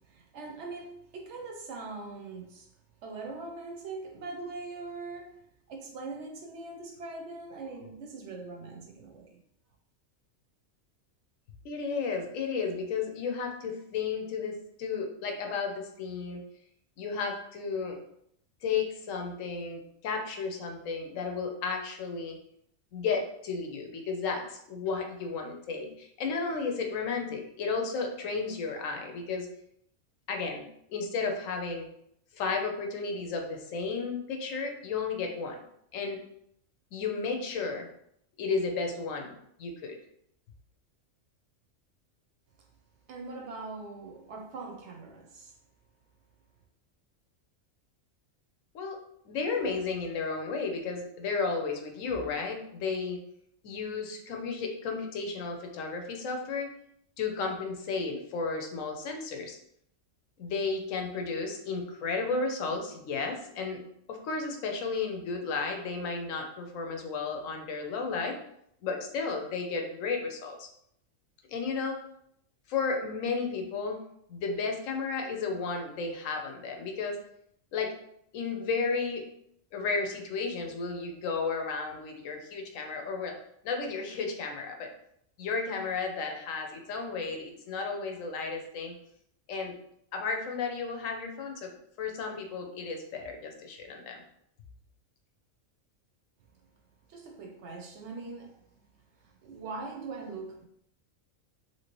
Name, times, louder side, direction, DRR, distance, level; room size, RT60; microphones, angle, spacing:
voice 1, 0.0-2.7 3.0-9.4 43.1-45.6 97.1-98.9 99.1-100.6, right 3 dB, 65° right, 0.8 m, -42 dB
voice 2, 11.6-14.5 14.8-16.4 17.0-18.0 18.6-22.4 22.9-29.5 30.3-31.9 32.4-35.6 35.9-36.2 36.9-37.9 38.4-39.3 39.6-39.9 48.7-49.0 49.3-53.2 53.6-56.7 57.2-59.6 60.4-63.8 64.1-68.3 68.8-70.7 71.5-72.0 72.7-74.0 74.3-77.1 77.7-77.9 78.3-79.2 79.7-83.3 83.6-84.9 85.4-88.9 89.5-89.7 90.1-91.7 92.0-94.2, left 4 dB, 75° left, 1.0 m, -33 dB
2.9 x 2.8 x 2.9 m
omnidirectional pair, 1.4 m